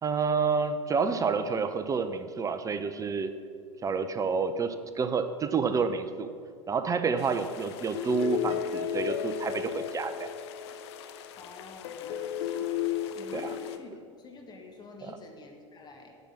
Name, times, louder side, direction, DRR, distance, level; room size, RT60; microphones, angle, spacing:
voice 1, 0.0-3.3 3.8-6.3 6.7-10.3 13.3-13.5 15.0-15.1, right 5 dB, 20° right, 10 dB, 0.6 m, -29 dB
sound 1, 7.2-13.8, left 9 dB, 60° left, 0.8 m, -34 dB
voice 2, 11.3-12.6 13.1-16.2, left 3 dB, 25° left, 2 dB, 1.5 m, -48 dB
10.0 x 6.1 x 8.5 m, 2.3 s
figure-of-eight pair, 85°, 16 cm